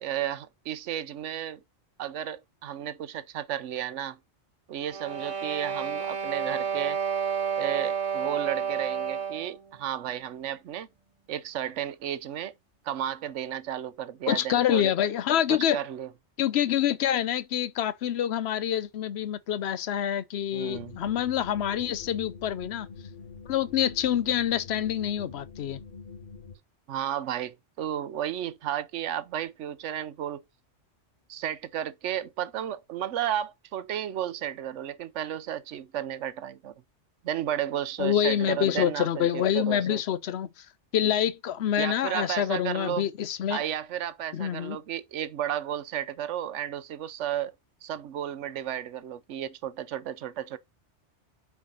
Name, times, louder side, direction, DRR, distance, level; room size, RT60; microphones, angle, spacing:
voice 1, 0.0-1.6 2.0-4.2 4.7-7.0 7.6-10.9 11.3-12.5 12.8-14.9 15.5-16.1 20.5-21.0 26.9-30.4 31.3-36.7 37.2-40.0 41.8-43.0 43.5-47.5 47.8-50.6, right 11 dB, 80° right, 1.0 m, -33 dB
sound 1, 4.8-9.6, right 7 dB, 35° right, 0.7 m, -30 dB
voice 2, 14.3-15.8 16.4-22.9 23.5-25.8 38.0-40.6 40.9-43.6 44.3-44.8, left 10 dB, 65° left, 0.9 m, -26 dB
sound 2, 20.7-26.6, left 5 dB, 50° left, 1.2 m, -45 dB
8.2 x 4.6 x 4.0 m
omnidirectional pair, 1.2 m